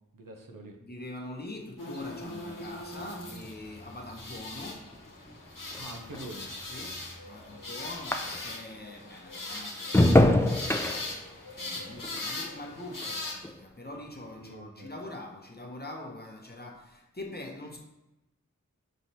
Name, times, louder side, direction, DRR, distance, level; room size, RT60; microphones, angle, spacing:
voice 1, 0.1-0.8 5.8-6.5 7.5-7.7 14.4-14.9, right 1 dB, 90° right, 0.7 m, -45 dB
voice 2, 0.8-5.0 6.7-10.2 11.5-17.8, left 2 dB, 30° left, 0.8 m, -43 dB
sound 1, 1.8-13.3, left 2 dB, 85° left, 0.9 m, -40 dB
sound 2, 2.0-8.8 9.1-13.7 14.0-14.5, left 1 dB, 10° left, 0.3 m, -29 dB
5.6 x 3.1 x 2.8 m
wide cardioid pair, 45°, 32 cm